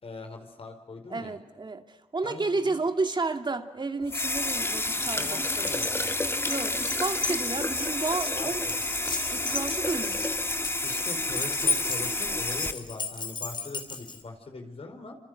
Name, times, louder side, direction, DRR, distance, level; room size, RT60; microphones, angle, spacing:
voice 1, 0.0-1.4 2.2-2.8 5.0-6.1 8.3-8.8 10.8-15.2, left 3 dB, 70° left, 5 dB, 4.9 m, -41 dB
voice 2, 1.1-5.4 6.5-8.7 9.3-10.2, right 3 dB, 50° right, 6 dB, 2.5 m, -31 dB
sound 1, 4.1-12.7, left 2 dB, 25° left, 1.7 m, -30 dB
Keys jangling, 5.0-14.2, left 4 dB, 50° left, 4.0 m, -35 dB
28.0 x 26.5 x 7.9 m, 0.97 s
cardioid pair, 55°, 10 cm